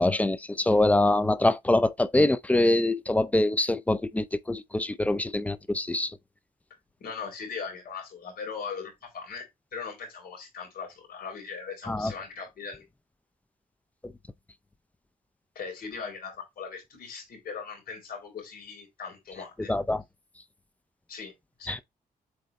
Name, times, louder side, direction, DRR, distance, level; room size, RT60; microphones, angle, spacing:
voice 1, 0.0-6.2 11.9-12.1 14.0-14.1 19.6-20.0 21.7-21.8, left 2 dB, 10° left, 0.4 m, -24 dB
voice 2, 7.0-12.8 15.5-19.7 21.1-21.3 21.6-21.8, left 5 dB, 90° left, 4.0 m, -39 dB
7.7 x 4.1 x 3.0 m
wide cardioid pair, 160°, 15 cm